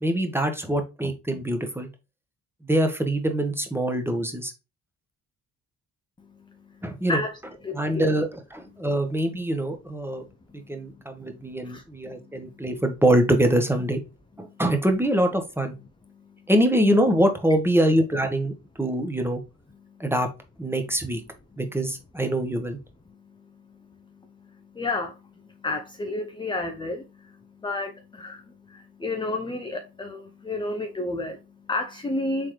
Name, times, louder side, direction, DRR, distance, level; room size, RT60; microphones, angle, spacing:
voice 1, 0.0-1.9 2.6-4.5 6.8-7.2 7.7-10.2 10.5-14.0 14.4-15.7 16.5-19.4 20.0-20.3 20.6-21.2 21.6-22.8, right 1 dB, 5° right, 1.0 m, -24 dB
voice 2, 6.2-7.4 7.6-8.1 8.7-8.9 10.2-11.8 12.1-12.7 14.4-14.6 16.1-16.5 19.7-20.1 21.5-21.6 23.1-32.5, left 2 dB, 15° left, 0.5 m, -33 dB
3.7 x 3.2 x 3.1 m
supercardioid pair, 60°, 38 cm